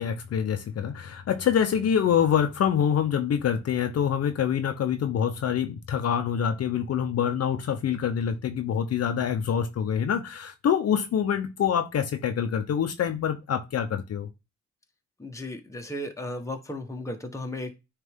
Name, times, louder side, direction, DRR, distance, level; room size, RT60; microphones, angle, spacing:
voice 1, 0.0-14.3, left 8 dB, 55° left, 0.8 m, -26 dB
voice 2, 15.2-17.7, left 1 dB, 10° left, 1.2 m, -35 dB
9.4 x 3.3 x 3.6 m
cardioid pair, 90°, 30 cm